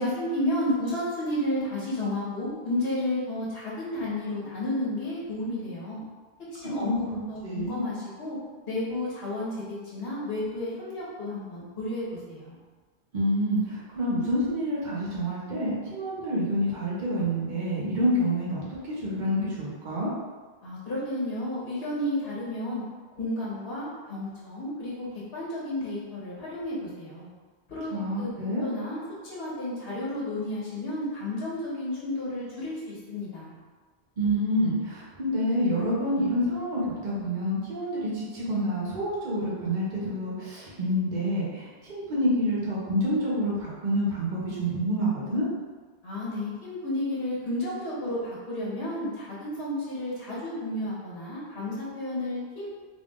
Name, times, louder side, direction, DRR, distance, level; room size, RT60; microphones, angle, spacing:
voice 1, 0.0-6.0 6.5-8.4 8.7-12.6 20.6-22.8 23.2-25.1 25.3-27.3 27.7-27.9 28.2-28.3 28.6-33.5 46.0-52.7, left 1 dB, 65° left, -7 dB, 1.6 m, -32 dB
voice 2, 6.8-7.9 13.1-20.1 27.9-28.6 34.2-45.5, equal, 45° right, -7 dB, 1.1 m, -28 dB
3.8 x 2.4 x 3.7 m, 1.4 s
omnidirectional pair, 1.1 m